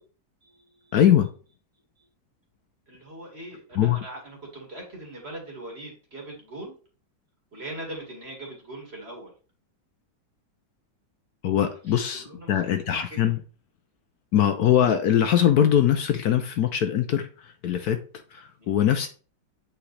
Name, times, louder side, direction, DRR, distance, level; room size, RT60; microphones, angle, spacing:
voice 1, 0.4-0.9 2.0-2.1 2.9-6.8 7.5-9.3 11.9-13.3 18.6-18.8, right 1 dB, 35° right, 2.4 m, -41 dB
voice 2, 0.9-1.3 3.8-4.0 11.4-13.4 14.3-18.0 18.3-19.1, left 10 dB, 70° left, 1.1 m, -22 dB
8.5 x 5.1 x 3.3 m
omnidirectional pair, 1.9 m